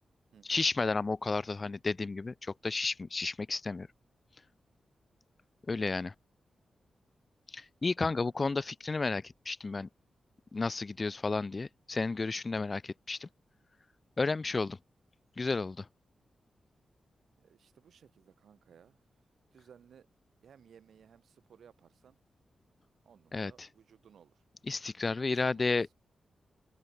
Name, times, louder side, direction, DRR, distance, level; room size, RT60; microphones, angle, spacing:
voice 1, 0.4-3.9 5.7-6.1 7.5-9.9 10.5-13.3 14.2-14.8 15.4-15.9 23.3-23.7 24.7-25.9, left 3 dB, 30° left, 1.1 m, -32 dB
voice 2, 17.4-19.0 19.5-20.1 20.4-22.2 23.0-24.4 25.2-25.9, right 8 dB, 80° right, 7.4 m, -60 dB
open air
wide cardioid pair, 145°, 0 cm